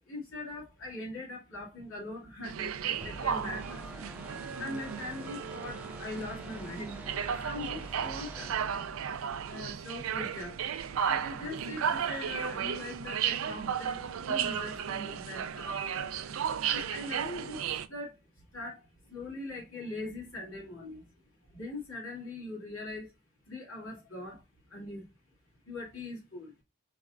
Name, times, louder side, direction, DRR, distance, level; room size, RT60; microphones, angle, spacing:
voice 1, 0.1-4.0 4.6-7.0 7.4-8.6 9.4-10.6 10.8-15.8 16.2-16.3 16.6-18.2 18.5-21.1 21.5-23.1 23.5-24.4 24.7-25.1 25.7-26.5, left 2 dB, 80° left, 2.3 m, -41 dB
sound 1, 2.4-17.9, right 8 dB, 80° right, 0.4 m, -34 dB
sound 2, 3.0-9.5, right 1 dB, 5° right, 0.4 m, -46 dB
4.1 x 3.3 x 2.4 m
head